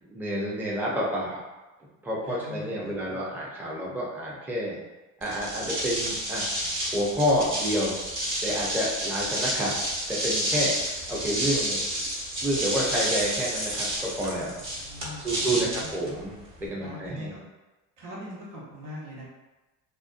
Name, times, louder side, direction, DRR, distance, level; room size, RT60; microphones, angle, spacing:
voice 1, 0.0-1.4 2.0-4.8 5.2-6.4 6.9-8.0 8.4-9.8 10.1-10.7 11.1-12.1 12.4-14.5 15.2-16.3 16.6-17.4, equal, 5° right, -5 dB, 0.6 m, -29 dB
voice 2, 2.2-3.2 14.6-15.9 16.8-17.4 18.0-19.3, equal, 70° right, -5 dB, 1.1 m, -41 dB
sound 1, 5.2-16.7, equal, 45° right, 1.1 m, -30 dB
2.5 x 2.3 x 2.5 m, 1.1 s
supercardioid pair, 80°, 40 cm